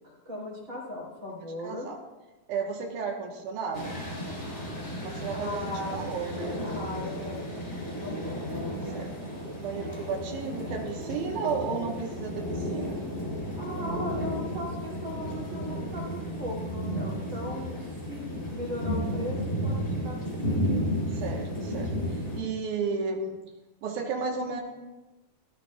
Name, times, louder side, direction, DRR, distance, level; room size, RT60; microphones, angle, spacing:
voice 1, 0.0-1.9 5.3-6.1 6.6-8.4 13.6-20.2 20.5-20.7, left 1 dB, 25° right, -3 dB, 3.0 m, -38 dB
voice 2, 1.6-2.0 2.5-4.0 5.0-6.7 8.7-9.2 9.6-13.1 21.1-23.4 23.8-24.6, right 5 dB, 90° right, 0 dB, 2.7 m, -33 dB
sound 1, 3.7-22.4, equal, 25° left, 2.6 m, -33 dB
16.0 x 13.5 x 2.3 m, 1.1 s
omnidirectional pair, 3.5 m